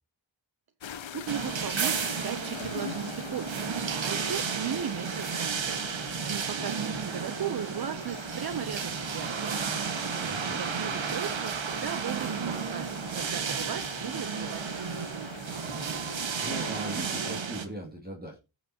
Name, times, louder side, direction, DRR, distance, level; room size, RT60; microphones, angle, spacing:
sound 1, 0.8-17.4, left 8 dB, 80° left, 1.0 m, -45 dB
voice 1, 1.1-3.7 4.0-5.8 6.2-9.5 10.6-15.3, right 8 dB, 55° right, 0.7 m, -37 dB
sound 2, 1.3-17.7, right 6 dB, 80° right, 1.6 m, -33 dB
voice 2, 10.2-10.6 16.4-18.4, equal, 20° right, 2.4 m, -39 dB
18.0 x 6.8 x 2.8 m
wide cardioid pair, 75°, 45 cm